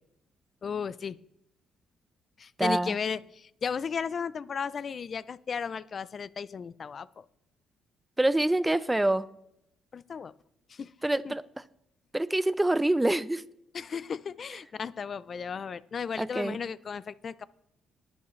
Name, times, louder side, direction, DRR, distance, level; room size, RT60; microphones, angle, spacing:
voice 1, 0.6-1.2 2.4-7.3 9.9-10.3 10.7-10.9 11.2-11.3 13.7-17.5, left 6 dB, 45° left, 18 dB, 0.4 m, -35 dB
voice 2, 2.6-3.0 8.2-9.2 11.0-11.4 12.1-13.4 16.2-16.6, right 1 dB, 10° right, 16 dB, 0.5 m, -26 dB
20.0 x 7.1 x 3.2 m, 0.78 s
cardioid pair, 90°, 0 cm